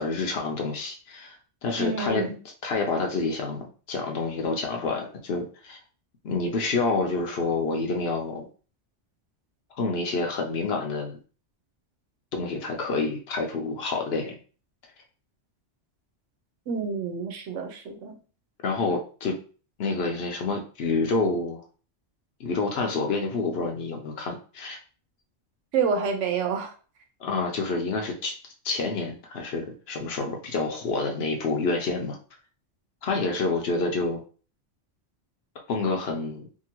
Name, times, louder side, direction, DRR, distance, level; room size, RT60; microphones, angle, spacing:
voice 1, 0.0-1.4 1.6-2.3 2.6-5.8 6.2-8.4 9.8-11.2 12.3-14.3 18.6-19.4 19.8-21.6 22.4-24.8 27.2-28.4 28.6-32.2 33.0-34.2 35.7-36.5, left 3 dB, 65° left, 3 dB, 0.9 m, -28 dB
voice 2, 1.8-2.4 16.7-18.2 25.7-26.7, right 5 dB, 85° right, 5 dB, 1.0 m, -28 dB
2.7 x 2.7 x 2.9 m, 0.38 s
omnidirectional pair, 1.2 m